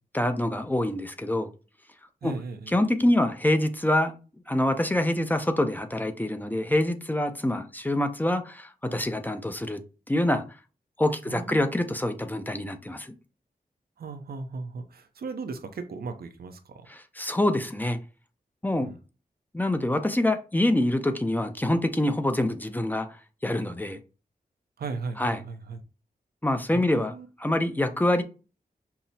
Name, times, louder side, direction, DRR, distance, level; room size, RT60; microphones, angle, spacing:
voice 1, 0.1-1.5 2.2-2.3 2.7-4.2 4.5-9.8 10.1-10.4 11.0-13.1 16.9-18.0 18.6-18.9 19.5-23.1 23.4-24.0 25.2-25.4 26.4-27.1 27.4-28.2, left 1 dB, 10° left, 0.5 m, -25 dB
voice 2, 2.2-2.9 11.3-11.9 14.0-16.9 18.8-18.9 24.8-25.8 26.7-27.3, right 4 dB, 80° right, 0.5 m, -37 dB
5.6 x 2.0 x 2.7 m
wide cardioid pair, 80°, 16 cm